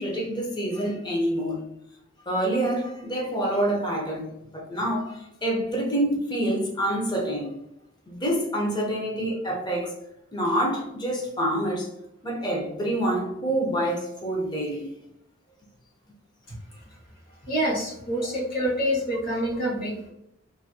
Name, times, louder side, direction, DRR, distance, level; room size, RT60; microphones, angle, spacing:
voice 1, 0.0-1.6 2.3-7.5 8.1-9.9 10.3-11.9 12.2-14.9 18.2-18.3, right 1 dB, 20° left, 0.7 m, -27 dB
voice 2, 17.5-20.1, equal, 50° left, 1.3 m, -27 dB
2.6 x 2.6 x 2.7 m
head